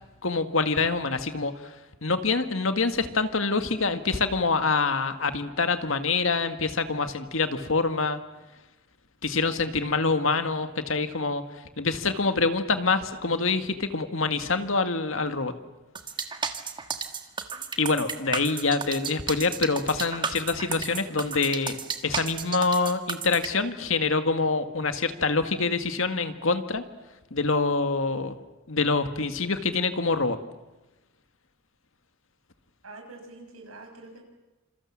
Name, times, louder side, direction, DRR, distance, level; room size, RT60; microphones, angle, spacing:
voice 1, 0.2-1.8 2.0-8.2 9.2-11.4 11.8-15.5 17.8-21.8 22.0-26.8 27.3-28.4 28.7-30.4, left 4 dB, 70° left, 8 dB, 1.9 m, -26 dB
sound 1, 16.0-23.5, right 5 dB, 20° right, 1.6 m, -32 dB
voice 2, 32.8-34.2, right 2 dB, 85° right, 3 dB, 6.5 m, -45 dB
28.0 x 27.0 x 7.4 m, 1.1 s
head